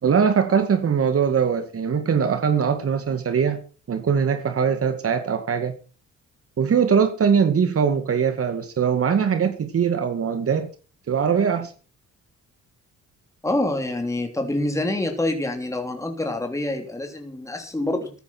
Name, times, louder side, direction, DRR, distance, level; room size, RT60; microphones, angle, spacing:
voice 1, 0.0-3.6 3.9-5.7 6.6-10.7 11.1-11.7, right 7 dB, 50° right, 2.2 m, -21 dB
voice 2, 13.4-18.2, left 1 dB, 10° left, 3.3 m, -26 dB
14.0 x 10.5 x 6.2 m
cardioid pair, 90°, 30 cm